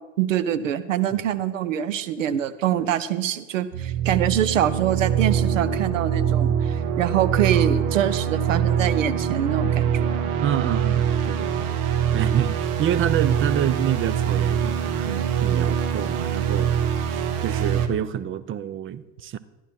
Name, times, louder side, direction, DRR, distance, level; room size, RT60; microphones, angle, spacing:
voice 1, 0.2-10.3, right 10 dB, 90° right, 0.9 m, -24 dB
sound 1, 3.7-17.9, right 8 dB, 60° right, 1.4 m, -24 dB
voice 2, 7.4-7.8 10.4-11.8 12.1-16.7 17.1-19.4, right 10 dB, 35° right, 0.7 m, -27 dB
14.0 x 11.0 x 4.4 m
hypercardioid pair, 95°, 37 cm